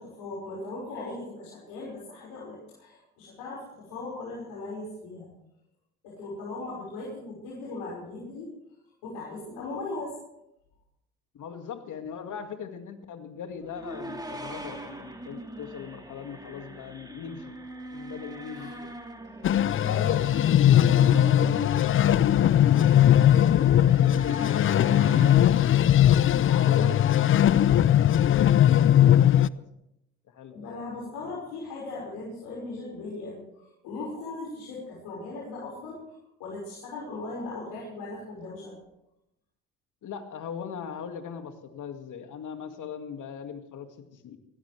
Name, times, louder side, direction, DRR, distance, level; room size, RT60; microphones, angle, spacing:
voice 1, 0.0-5.3 6.0-8.5 9.0-10.1 18.5-18.7 26.4-26.9 30.5-38.8, left 3 dB, 75° left, -5 dB, 5.8 m, -38 dB
voice 2, 11.3-17.6 17.9-19.0 19.8-25.6 26.4-29.6 30.3-30.7 31.2-31.4 40.0-44.4, left 7 dB, 55° left, 6 dB, 2.3 m, -40 dB
sound 1, 13.6-25.4, right 2 dB, 10° right, 3.1 m, -41 dB
sound 2, 19.4-29.5, left 11 dB, 35° left, 0.5 m, -20 dB
22.0 x 16.5 x 3.4 m, 0.82 s
hypercardioid pair, 60°, 37 cm